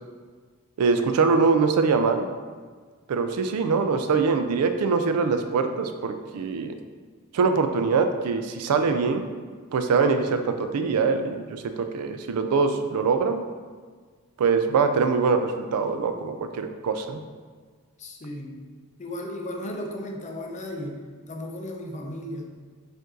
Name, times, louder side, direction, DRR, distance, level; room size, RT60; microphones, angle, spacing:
voice 1, 0.8-2.3 3.1-6.7 7.3-9.4 9.7-13.4 14.4-17.2, right 4 dB, 85° right, 8 dB, 0.4 m, -23 dB
voice 2, 18.0-18.6 19.0-21.0 21.3-22.5, left 1 dB, 30° left, 1 dB, 0.6 m, -35 dB
5.1 x 2.6 x 3.7 m, 1.5 s
head